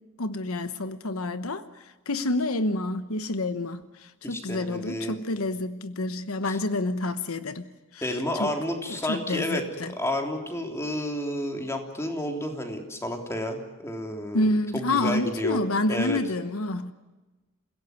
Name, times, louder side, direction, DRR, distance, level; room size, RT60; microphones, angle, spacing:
voice 1, 0.2-1.6 2.1-7.7 7.9-8.5 8.9-9.9 14.3-16.9, left 2 dB, 80° left, 1.1 m, -28 dB
voice 2, 4.2-5.2 6.5-6.6 8.0-15.6 15.9-16.2, left 1 dB, 15° left, 3.4 m, -31 dB
28.5 x 17.0 x 9.5 m
head